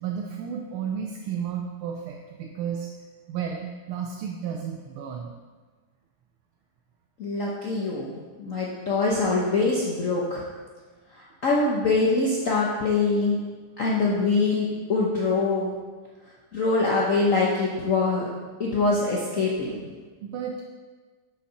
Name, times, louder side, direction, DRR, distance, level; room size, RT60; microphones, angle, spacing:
voice 1, 0.0-2.9 3.3-5.3 20.2-20.6, right 7 dB, 80° right, 1 dB, 1.5 m, -32 dB
voice 2, 7.2-8.1 8.4-10.4 11.1-13.4 13.8-15.7 16.5-18.3 18.6-19.8, left 3 dB, 50° left, -4 dB, 1.0 m, -24 dB
7.3 x 5.8 x 5.7 m, 1.4 s
omnidirectional pair, 2.4 m